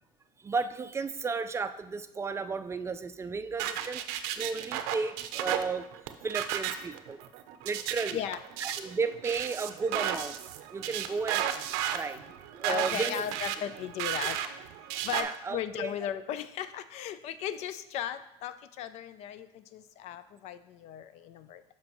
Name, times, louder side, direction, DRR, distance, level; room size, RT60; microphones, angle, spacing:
voice 1, 0.4-4.0 4.3-5.8 6.2-7.2 7.6-8.2 8.6-10.4 10.7-11.5 11.7-12.2 12.5-13.2 15.2-16.1, right 4 dB, 20° right, 11 dB, 0.4 m, -34 dB
sound 1, 3.6-15.2, right 11 dB, 85° right, 0.5 m, -34 dB
voice 2, 8.1-8.4 12.6-14.4 15.0-21.6, left 10 dB, 65° left, 13 dB, 0.4 m, -37 dB
7.4 x 5.7 x 3.0 m, 0.84 s
supercardioid pair, 100°, 12 cm